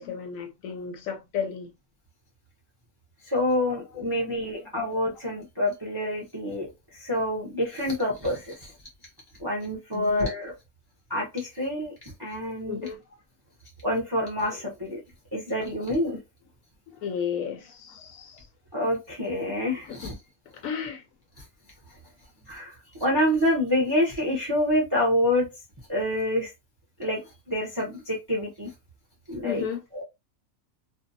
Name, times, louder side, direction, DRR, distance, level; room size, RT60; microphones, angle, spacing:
voice 1, 0.0-1.7 3.7-4.3 9.9-10.2 12.7-13.0 17.0-18.5 19.9-20.1 20.5-21.0 29.4-29.8, left 7 dB, 70° left, 0.9 m, -34 dB
voice 2, 3.3-8.7 9.4-10.5 11.1-12.8 13.8-15.0 15.3-16.2 18.7-20.1 22.5-25.5 25.9-26.5 27.0-27.2 27.5-28.7 29.3-29.7 29.9-30.0, left 1 dB, 30° right, 0.4 m, -27 dB
2.6 x 2.2 x 2.6 m
omnidirectional pair, 1.6 m